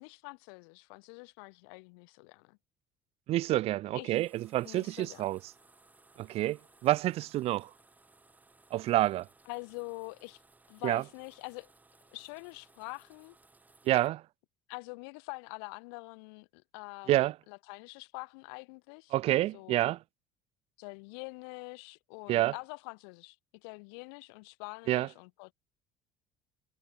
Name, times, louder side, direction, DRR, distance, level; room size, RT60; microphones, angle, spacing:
voice 1, 0.0-2.6 3.9-4.2 4.6-5.2 9.5-10.4 10.7-11.7 12.1-13.4 14.7-19.8 20.8-25.5, left 35 dB, 90° left, 5.1 m, -45 dB
voice 2, 3.3-5.4 6.2-7.7 8.7-9.3 10.8-11.0 13.9-14.2 17.1-17.3 19.1-20.0 22.3-22.5 24.9-25.1, right 15 dB, 55° right, 0.8 m, -28 dB
sound 1, 4.1-14.1, right 3 dB, 15° right, 7.7 m, -63 dB
cardioid pair, 115°, 12 cm